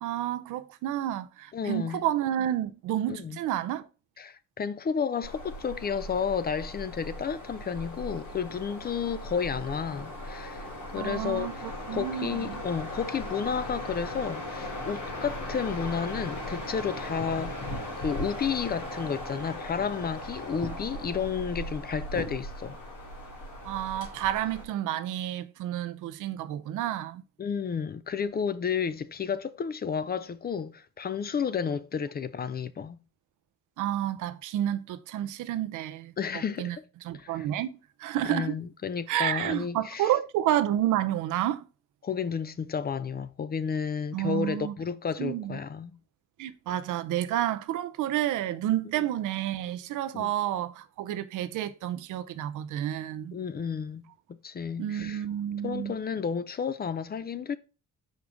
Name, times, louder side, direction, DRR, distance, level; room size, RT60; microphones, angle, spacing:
voice 1, 0.0-3.9 11.0-12.6 23.6-27.2 33.8-36.8 37.0-38.6 39.1-41.7 44.1-44.7 45.2-45.6 46.4-53.3 54.8-55.9, right 12 dB, 80° right, 0.6 m, -30 dB
voice 2, 1.5-2.0 3.1-3.4 4.2-22.8 27.4-33.0 36.2-36.8 37.1-37.4 38.3-40.1 42.0-46.0 50.1-50.3 53.3-54.0 54.4-55.2 55.6-57.6, left 6 dB, 30° left, 0.4 m, -32 dB
sound 1, 5.2-24.6, left 1 dB, 85° left, 3.1 m, -38 dB
5.2 x 4.7 x 3.8 m
cardioid pair, 90°, 30 cm